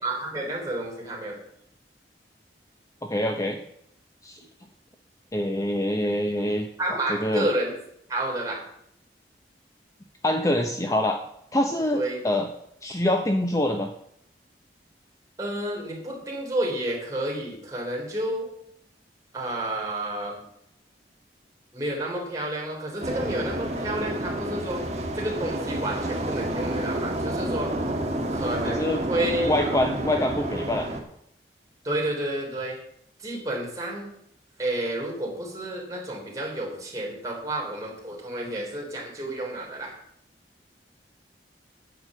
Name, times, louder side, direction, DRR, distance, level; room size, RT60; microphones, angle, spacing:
voice 1, 0.0-1.4 6.8-7.7 8.1-8.6 11.9-12.2 15.4-18.5 19.3-20.4 21.7-24.8 25.1-27.7 28.3-29.8 31.8-32.8 33.2-34.1 34.6-40.0, right 1 dB, 20° right, -3 dB, 3.9 m, -30 dB
voice 2, 3.0-3.6 4.2-4.4 5.3-7.5 10.2-11.2 11.5-12.5 12.8-13.9 28.6-29.0 29.5-30.9, left 1 dB, 20° left, 3 dB, 0.8 m, -25 dB
sound 1, 23.0-31.0, right 1 dB, 40° right, 1.8 m, -29 dB
9.8 x 7.0 x 7.7 m, 0.73 s
head